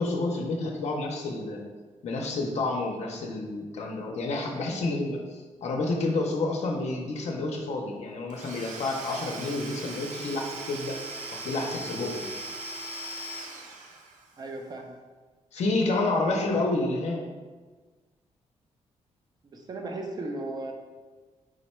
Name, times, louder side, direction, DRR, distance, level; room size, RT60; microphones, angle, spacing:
voice 1, 0.0-1.6 2.0-12.3 15.5-17.2, left 2 dB, 65° left, 0 dB, 0.5 m, -29 dB
Domestic sounds home sounds / Tools, 8.3-14.4, right 2 dB, 90° right, 0.5 m, -39 dB
voice 2, 14.4-14.9 16.3-16.7 19.5-20.7, right 2 dB, 35° right, 3 dB, 0.5 m, -36 dB
4.9 x 2.1 x 4.2 m, 1.4 s
wide cardioid pair, 145°, 12 cm